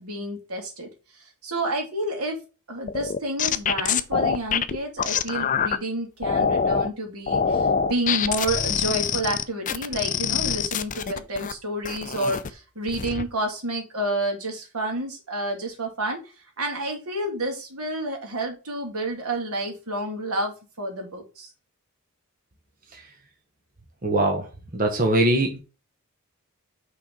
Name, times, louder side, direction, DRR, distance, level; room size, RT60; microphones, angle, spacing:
voice 1, 0.0-2.4 2.7-21.5, right 1 dB, 85° right, 2.7 m, -30 dB
sound 1, 2.9-5.8 6.2-6.9 7.3-11.5 11.8-12.5 12.9-13.2, left 6 dB, 35° left, 0.5 m, -25 dB
voice 2, 24.0-24.4 24.7-25.6, right 1 dB, 40° right, 1.2 m, -21 dB
6.0 x 4.0 x 5.0 m
head